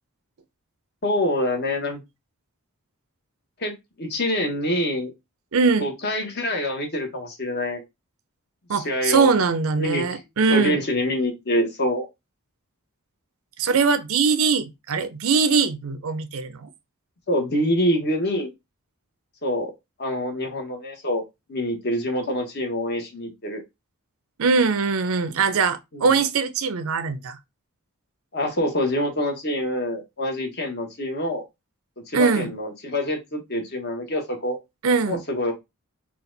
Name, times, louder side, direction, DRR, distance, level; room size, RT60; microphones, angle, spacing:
voice 1, 1.0-2.0 3.6-5.1 5.8-7.8 8.7-9.3 9.8-10.2 10.5-12.1 17.3-18.5 19.4-19.7 20.0-21.2 21.5-23.6 25.9-26.1 28.3-31.4 32.1-34.6 35.1-35.5, left 1 dB, 50° left, 1.2 m, -26 dB
voice 2, 5.5-5.9 8.7-10.8 13.6-16.7 24.4-27.4 32.1-32.5 34.8-35.2, right 5 dB, 70° right, 0.5 m, -21 dB
4.3 x 2.4 x 3.8 m
head